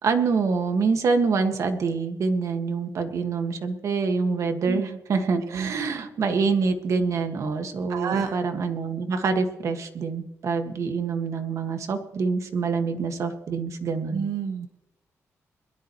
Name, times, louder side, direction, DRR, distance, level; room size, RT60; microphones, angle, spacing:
voice 1, 0.0-14.3, right 4 dB, 65° right, 6 dB, 2.0 m, -26 dB
voice 2, 7.9-8.6 14.1-14.7, right 7 dB, 90° right, 6 dB, 1.1 m, -29 dB
22.0 x 13.0 x 3.2 m, 0.91 s
cardioid pair, 115°, 6 cm